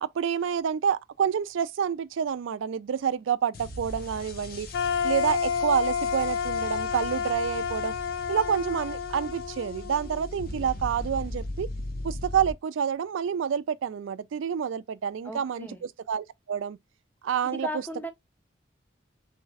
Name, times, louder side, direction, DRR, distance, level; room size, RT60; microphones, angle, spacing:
voice 1, 0.0-4.7 5.0-7.9 8.3-11.7 12.0-16.8 17.2-17.7, right 8 dB, 90° right, 0.4 m, -28 dB
sound 1, 3.5-12.5, left 1 dB, 50° left, 0.7 m, -39 dB
sound 2, 4.7-10.6, left 7 dB, 75° left, 0.3 m, -30 dB
voice 2, 15.2-15.8 17.4-18.1, equal, 10° left, 0.5 m, -36 dB
3.5 x 3.2 x 3.2 m
head